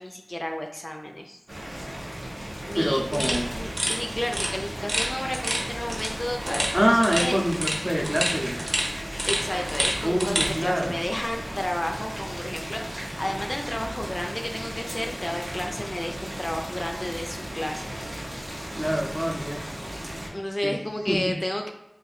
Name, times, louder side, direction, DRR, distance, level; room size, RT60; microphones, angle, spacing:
voice 1, 0.0-1.4 2.6-7.4 9.3-17.9 20.3-21.7, left 1 dB, 40° left, 2 dB, 0.4 m, -32 dB
Boiling, 1.5-20.3, equal, 85° right, 0.9 m, -36 dB
voice 2, 2.8-3.4 6.7-8.6 10.0-11.0 18.7-19.6 20.6-21.2, equal, 15° right, 0 dB, 0.6 m, -25 dB
sound 1, 3.1-10.5, equal, 50° right, 0.9 m, -30 dB
2.6 x 2.5 x 4.0 m, 0.91 s
wide cardioid pair, 40°, 0 cm